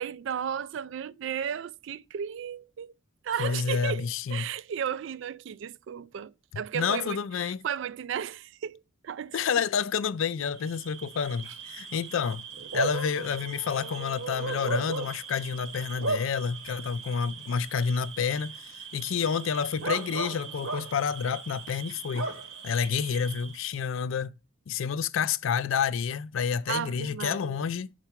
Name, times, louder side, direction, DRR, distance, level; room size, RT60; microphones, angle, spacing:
voice 1, 0.0-2.9 3.2-8.8 9.0-9.4 26.7-27.6, right 8 dB, 60° right, 0.3 m, -34 dB
voice 2, 3.4-4.5 6.7-7.6 9.3-12.5 12.7-22.3 22.6-24.3 24.7-27.9, left 6 dB, 70° left, 0.4 m, -29 dB
Bark / Cricket, 10.5-23.8, right 3 dB, 80° right, 1.2 m, -37 dB
5.8 x 4.5 x 4.4 m
head